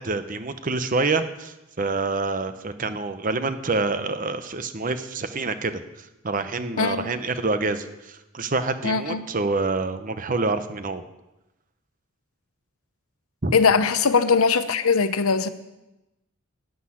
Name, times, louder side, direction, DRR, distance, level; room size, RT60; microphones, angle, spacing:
voice 1, 0.0-11.0 13.4-13.5, right 3 dB, 40° right, 0.8 m, -27 dB
voice 2, 8.8-9.2 13.5-15.5, left 5 dB, 85° left, 0.8 m, -20 dB
13.5 x 6.4 x 9.8 m
head